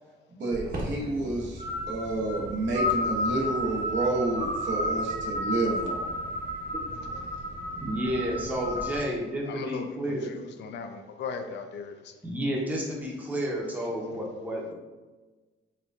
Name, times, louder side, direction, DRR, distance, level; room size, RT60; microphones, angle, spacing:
voice 1, 0.3-6.1, right 2 dB, 65° right, -2 dB, 0.7 m, -30 dB
sound 1, 0.5-9.0, left 1 dB, 45° right, 1.0 m, -32 dB
voice 2, 6.7-7.3 7.8-10.4 12.2-14.7, equal, 10° right, -3 dB, 0.7 m, -32 dB
voice 3, 9.5-12.1, left 5 dB, 60° left, 6 dB, 0.4 m, -38 dB
4.3 x 2.3 x 2.4 m, 1.3 s
cardioid pair, 90°, 20 cm